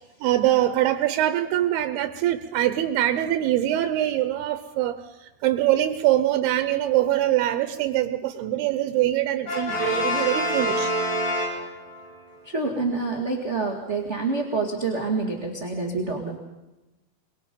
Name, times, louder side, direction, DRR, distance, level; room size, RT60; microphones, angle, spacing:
voice 1, 0.2-5.0 5.2-10.9, right 13 dB, 90° right, 9 dB, 2.9 m, -23 dB
Brass instrument, 9.5-12.1, left 1 dB, 40° left, 5.2 m, -26 dB
voice 2, 12.4-16.4, right 3 dB, 25° right, 0 dB, 1.6 m, -27 dB
24.5 x 22.0 x 5.4 m, 1.0 s
omnidirectional pair, 4.4 m